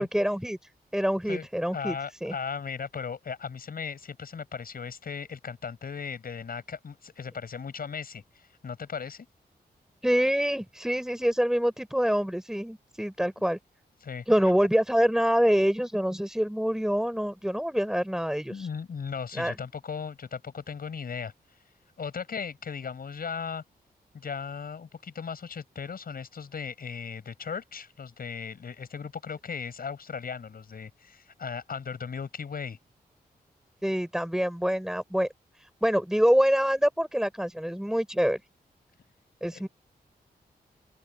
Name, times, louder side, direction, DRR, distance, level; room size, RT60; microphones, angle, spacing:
voice 1, 0.0-2.3 10.0-13.6 14.3-18.7 19.3-19.6 33.8-35.3 35.6-38.4 39.4-39.7, equal, 5° right, 6.7 m, -26 dB
voice 2, 1.7-9.3 14.0-14.2 18.5-21.3 22.0-23.6 24.1-32.8 39.5-39.7, left 6 dB, 65° left, 6.6 m, -37 dB
open air
wide cardioid pair, 105°, 17 cm